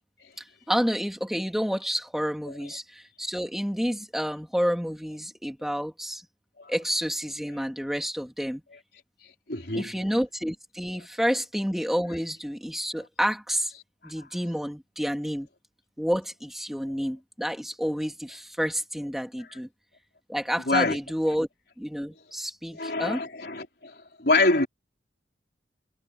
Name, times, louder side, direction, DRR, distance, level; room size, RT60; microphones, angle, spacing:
voice 1, 0.7-6.2 6.7-8.6 9.7-13.7 14.0-15.5 16.0-19.7 20.3-21.5 21.8-23.2, equal, ahead, 2.4 m, -29 dB
voice 2, 9.5-9.9 20.7-21.0 22.8-23.9 24.2-24.7, left 2 dB, 60° left, 4.5 m, -25 dB
head